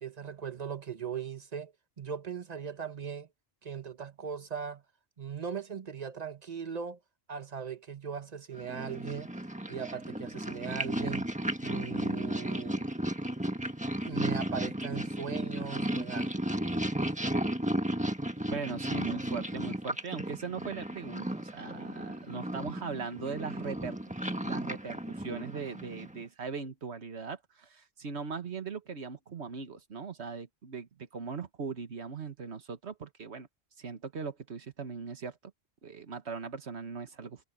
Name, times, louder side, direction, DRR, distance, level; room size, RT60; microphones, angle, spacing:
voice 1, 0.0-3.3 3.6-4.8 5.2-7.0 7.3-9.3 9.7-11.3 11.6-12.8 14.0-16.4, right 7 dB, 40° right, 1.1 m, -39 dB
Purr, 8.6-26.2, right 1 dB, 5° right, 1.4 m, -34 dB
voice 2, 18.5-24.0 24.2-33.5 33.8-35.4 35.8-37.4, right 5 dB, 75° right, 1.7 m, -39 dB
omnidirectional pair, 1.1 m